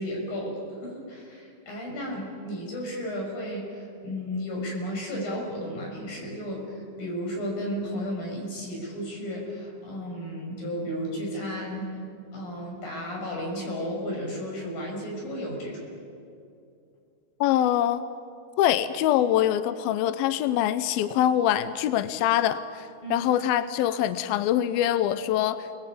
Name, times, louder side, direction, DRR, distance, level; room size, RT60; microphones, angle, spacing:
voice 1, 0.0-12.0 12.3-15.9 23.0-23.3, equal, 50° left, -1 dB, 7.8 m, -33 dB
voice 2, 17.4-18.0 18.6-25.8, left 11 dB, 80° left, 12 dB, 2.2 m, -24 dB
30.0 x 20.5 x 8.5 m, 2.5 s
omnidirectional pair, 5.1 m